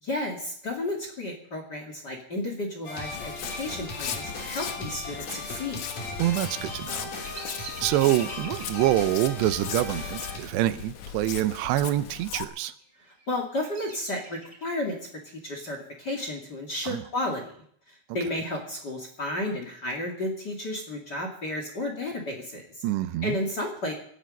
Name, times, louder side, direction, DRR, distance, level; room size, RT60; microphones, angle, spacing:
voice 1, 0.0-5.8 13.3-15.0 15.4-17.5 17.9-22.8 23.2-23.9, left 1 dB, 30° left, 2 dB, 2.3 m, -32 dB
sound 1, 2.8-10.4, left 2 dB, 50° left, 4.5 m, -37 dB
Walk footsteps, 3.0-12.4, left 9 dB, 65° left, 1.9 m, -38 dB
voice 2, 6.2-7.1 7.8-12.7 16.9-17.0 22.8-23.4, right 14 dB, 90° right, 12 dB, 3.0 m, -26 dB
Bird vocalization bird call bird song, 6.9-11.5 11.8-12.4 12.9-14.9, right 2 dB, 10° right, 4.0 m, -46 dB
18.5 x 13.5 x 5.3 m, 0.63 s
omnidirectional pair, 4.8 m